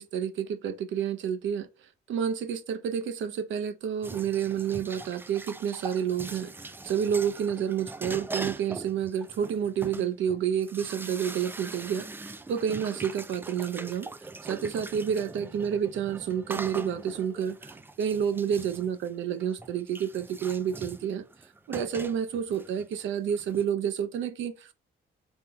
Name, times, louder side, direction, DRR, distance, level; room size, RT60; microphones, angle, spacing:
voice 1, 0.0-1.7 2.1-14.1 14.4-21.2 21.7-24.7, right 8 dB, 75° right, 0.6 m, -29 dB
sound 1, 4.0-23.6, right 2 dB, 10° right, 0.3 m, -41 dB
3.6 x 3.4 x 3.5 m
cardioid pair, 90°, 20 cm